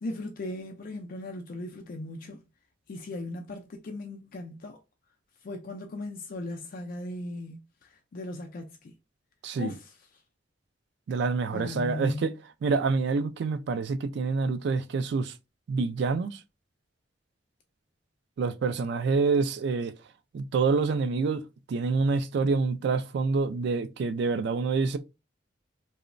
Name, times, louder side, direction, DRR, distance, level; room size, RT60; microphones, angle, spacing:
voice 1, 0.0-2.4 2.9-4.8 5.4-8.9 9.6-9.9 11.5-12.3, left 2 dB, 50° left, 0.3 m, -38 dB
voice 2, 11.1-12.3 12.6-15.3 15.7-16.4 18.4-19.9 20.3-25.0, right 4 dB, 65° right, 0.3 m, -27 dB
2.9 x 2.0 x 2.5 m
head